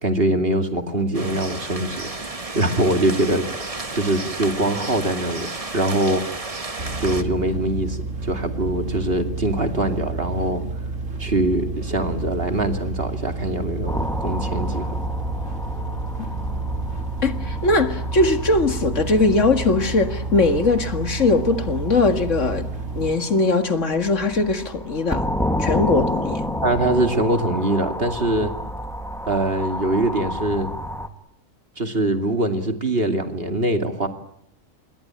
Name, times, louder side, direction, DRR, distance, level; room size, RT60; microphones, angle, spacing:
voice 1, 0.0-2.1 2.5-5.5 5.7-6.6 7.0-10.6 11.2-14.9 26.6-28.5 29.3-30.7 31.8-34.1, right 1 dB, 45° right, 2.7 m, -23 dB
sound 1, 1.1-7.2, right 3 dB, 25° right, 1.6 m, -32 dB
sound 2, 6.8-23.1, right 3 dB, 65° right, 3.9 m, -30 dB
sound 3, 13.9-31.1, left 1 dB, ahead, 1.8 m, -31 dB
voice 2, 17.2-22.7 23.0-25.3 25.6-26.4, left 3 dB, 65° left, 2.2 m, -20 dB
27.5 x 21.5 x 8.9 m
omnidirectional pair, 1.4 m